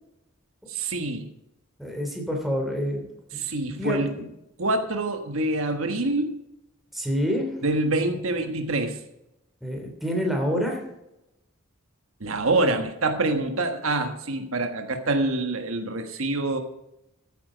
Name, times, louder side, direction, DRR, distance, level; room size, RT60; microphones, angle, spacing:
voice 1, 0.7-1.3 3.4-4.1 4.6-6.4 7.6-9.0 12.2-16.6, right 2 dB, 75° right, 6 dB, 1.4 m, -26 dB
voice 2, 1.8-3.0 3.3-4.2 6.9-7.5 9.6-10.8, equal, ahead, 1 dB, 3.0 m, -27 dB
14.5 x 8.7 x 5.1 m, 0.88 s
head